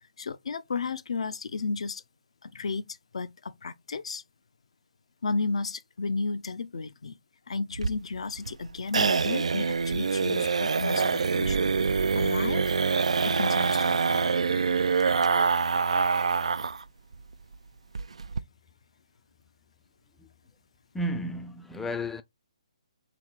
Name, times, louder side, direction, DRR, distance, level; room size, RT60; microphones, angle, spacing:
voice 1, 0.2-2.0 2.4-4.2 5.2-7.1 7.5-11.7 12.1-12.8 13.2-14.5, left 4 dB, 65° left, 0.5 m, -33 dB
sound 1, 7.7-16.8 17.1-17.2 17.5-17.6 17.9-18.4, right 5 dB, 65° right, 0.3 m, -25 dB
voice 2, 20.9-22.2, equal, 5° left, 0.4 m, -32 dB
3.5 x 3.0 x 4.6 m
figure-of-eight pair, 135°, 4 cm